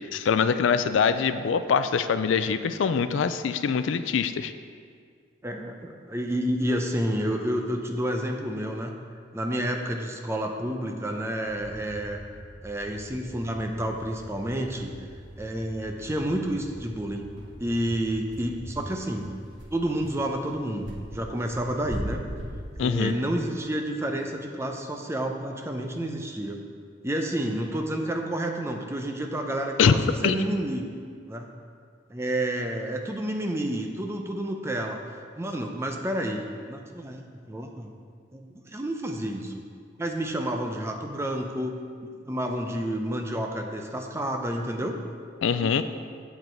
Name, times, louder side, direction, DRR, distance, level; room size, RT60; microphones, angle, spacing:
voice 1, 0.1-4.5 22.8-23.1 29.8-30.0 30.2-30.4 45.4-45.8, left 6 dB, 80° left, 11 dB, 0.4 m, -23 dB
voice 2, 5.4-8.9 9.3-12.2 12.6-14.9 15.4-17.2 17.6-19.3 19.7-22.2 22.8-26.6 27.0-30.9 31.3-31.5 32.1-35.0 35.4-37.9 38.3-39.6 40.0-45.0 45.6-45.8, right 1 dB, 15° right, 3 dB, 0.6 m, -30 dB
sound 1, 11.5-18.8, equal, 5° left, 1.4 m, -46 dB
sound 2, 14.0-14.1 14.4-14.5 14.8-15.0 15.3-15.4 15.9-24.3, equal, 70° right, 1.4 m, -39 dB
8.0 x 7.6 x 4.5 m, 2.1 s
head